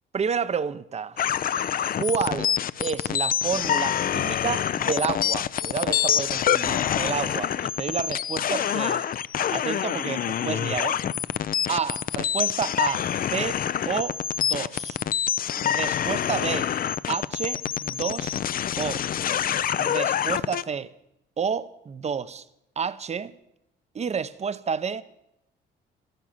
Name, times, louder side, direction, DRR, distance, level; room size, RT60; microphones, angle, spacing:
voice 1, 0.1-1.2 2.0-2.5 2.8-9.1 9.5-11.0 11.7-15.0 15.6-16.7 17.1-18.4 18.8-19.1 19.8-20.9 21.4-22.5 22.8-23.3 23.9-25.0, right 6 dB, 35° right, 0.7 m, -30 dB
sound 1, 1.2-20.6, left 9 dB, 45° left, 0.5 m, -26 dB
12.5 x 11.0 x 7.3 m
cardioid pair, 90°, 20 cm